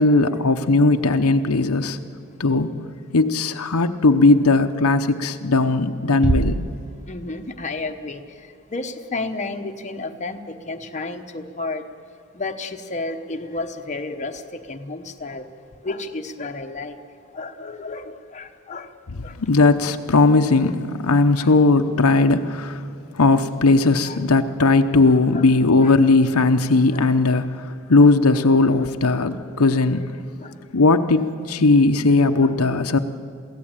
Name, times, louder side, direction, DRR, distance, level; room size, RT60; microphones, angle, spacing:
voice 1, 0.0-2.0 2.4-2.7 3.1-6.6 19.4-22.8 23.1-30.1 30.7-33.0, left 3 dB, 85° left, 7 dB, 0.8 m, -18 dB
Bass drum, 6.2-7.7, right 3 dB, 30° right, 0.5 m, -25 dB
voice 2, 7.1-8.2 8.7-11.8 12.3-15.4 15.8-17.0 17.3-18.9 19.2-19.3 21.4-21.6 22.1-22.3 24.0-24.2 25.0-25.9 26.9-27.1 28.8-28.9 30.4-30.5 32.4-32.5, left 3 dB, 35° left, 5 dB, 1.0 m, -32 dB
23.0 x 16.0 x 8.9 m, 2.4 s
head